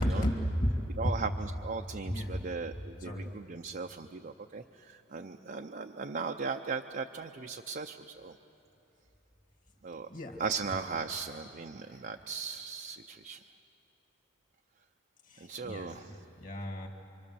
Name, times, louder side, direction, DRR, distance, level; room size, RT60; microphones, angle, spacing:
voice 1, 0.0-1.2 2.1-2.4 3.0-3.3 10.1-10.4 11.9-12.0 15.3-15.9 16.4-16.9, equal, 40° left, 3 dB, 2.1 m, -32 dB
voice 2, 1.0-8.4 9.8-10.1 10.4-13.4 15.4-16.1, right 4 dB, 40° right, 3 dB, 0.6 m, -38 dB
26.0 x 25.0 x 7.0 m, 2.9 s
head